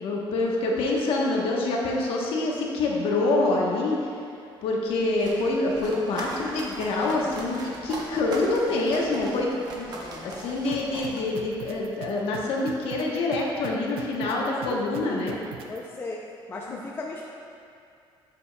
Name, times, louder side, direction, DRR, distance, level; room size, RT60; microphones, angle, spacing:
voice 1, 0.0-4.1 4.6-15.4 16.7-16.8, left 2 dB, 80° left, -2 dB, 1.1 m, -26 dB
sound 1, 4.9-11.8, right 2 dB, 45° right, 0.8 m, -40 dB
voice 2, 10.0-10.3 14.7-15.4 15.7-16.2 16.5-17.2, left 2 dB, 25° left, -2 dB, 0.4 m, -37 dB
sound 2, 10.7-15.8, right 9 dB, 85° right, 0.5 m, -40 dB
8.3 x 6.9 x 2.3 m, 2.5 s
cardioid pair, 155°, 9 cm